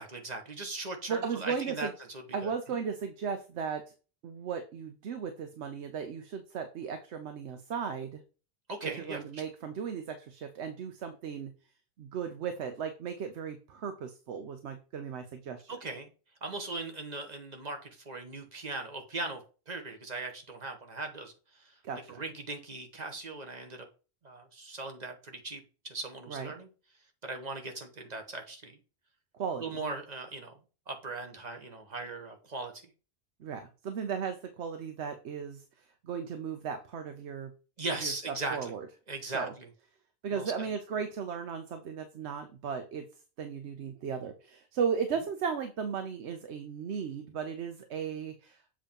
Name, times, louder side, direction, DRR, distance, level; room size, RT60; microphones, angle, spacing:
voice 1, 0.0-2.5 8.7-9.4 15.7-16.1 16.4-21.7 22.1-23.8 24.2-26.7 27.2-28.8 29.6-30.5 30.9-32.7 37.8-38.7 39.1-39.7 40.3-40.7, right 3 dB, 40° right, 5 dB, 1.1 m, -39 dB
voice 2, 1.1-1.9 2.3-3.8 4.2-8.2 9.0-11.5 12.0-15.8 21.8-22.2 26.3-26.5 29.3-29.6 33.4-35.6 36.0-37.5 38.0-38.9 39.3-39.5 40.2-43.1 43.4-48.6, right 6 dB, 85° right, 7 dB, 1.0 m, -36 dB
7.5 x 2.9 x 5.2 m, 0.35 s
omnidirectional pair, 1.1 m